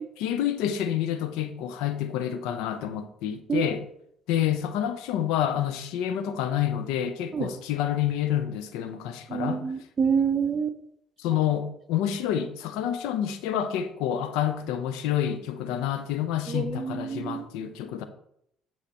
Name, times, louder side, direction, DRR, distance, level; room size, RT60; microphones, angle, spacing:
voice 1, 0.2-3.8 4.3-9.6 11.2-18.0, left 10 dB, 80° left, 0.6 m, -28 dB
voice 2, 9.3-10.8 16.5-17.5, right 6 dB, 40° right, 0.6 m, -27 dB
8.9 x 3.2 x 4.2 m
supercardioid pair, 70°, 0 cm